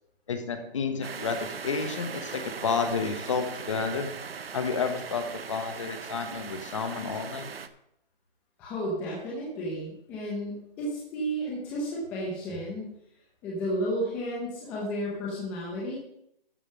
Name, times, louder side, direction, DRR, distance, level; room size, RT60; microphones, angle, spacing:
voice 1, 0.3-4.1 4.5-7.5, left 5 dB, 30° left, 7 dB, 1.1 m, -30 dB
sound 1, 1.0-7.7, right 6 dB, 80° right, 1.0 m, -39 dB
voice 2, 8.6-13.0 13.4-16.0, equal, 5° left, -4 dB, 0.8 m, -32 dB
12.5 x 5.3 x 6.4 m, 0.77 s
hypercardioid pair, 170°, 29 cm